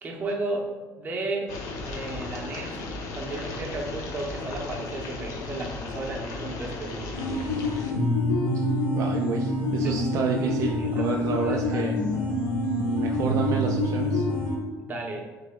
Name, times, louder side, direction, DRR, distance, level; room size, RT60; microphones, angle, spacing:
voice 1, 0.0-0.7 1.0-1.5 1.8-2.7 3.1-7.2 9.8-9.9 10.4-12.1 14.8-15.3, right 2 dB, 30° right, 0 dB, 0.8 m, -34 dB
sound 1, 1.5-7.9, left 3 dB, 65° left, 0.8 m, -36 dB
sound 2, 7.1-14.6, left 1 dB, 40° left, 1.4 m, -26 dB
voice 2, 8.9-12.0 12.8-14.3, right 6 dB, 55° right, 1 dB, 0.3 m, -30 dB
6.9 x 3.3 x 2.2 m, 1.3 s
cardioid pair, 150°, 7 cm